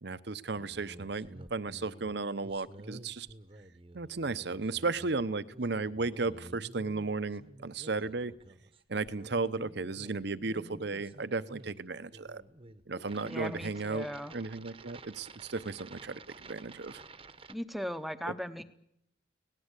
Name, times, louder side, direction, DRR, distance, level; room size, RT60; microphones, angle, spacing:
voice 1, 0.0-3.3 3.9-8.3 8.9-12.4 12.9-14.1 14.3-17.0 18.3-18.4, right 3 dB, 55° right, 14 dB, 0.8 m, -35 dB
sound 1, 0.5-17.5, right 2 dB, 30° right, 1.0 m, -51 dB
voice 2, 13.2-14.3 17.5-18.6, equal, ahead, 10 dB, 0.9 m, -38 dB
25.0 x 18.5 x 8.3 m, 0.77 s
head